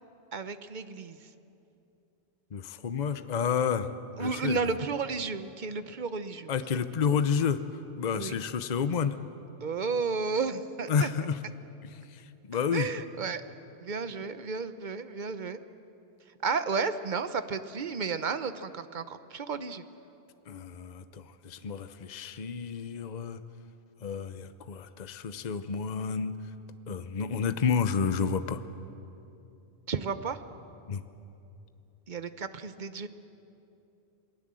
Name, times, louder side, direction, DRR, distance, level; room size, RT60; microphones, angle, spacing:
voice 1, 0.3-1.2 4.2-6.5 8.1-8.3 9.6-11.1 12.7-13.4 13.8-15.6 16.4-19.8 29.9-30.4 32.1-33.1, right 4 dB, 45° right, 11 dB, 1.0 m, -32 dB
voice 2, 2.5-3.9 4.2-4.6 6.5-7.6 8.0-9.2 10.9-11.4 11.8-12.2 12.5-12.9 20.5-23.4 24.0-26.3 26.9-28.6 30.9-31.0, left 6 dB, 45° left, 11 dB, 0.8 m, -30 dB
28.0 x 19.5 x 7.6 m, 2.8 s
omnidirectional pair, 1.1 m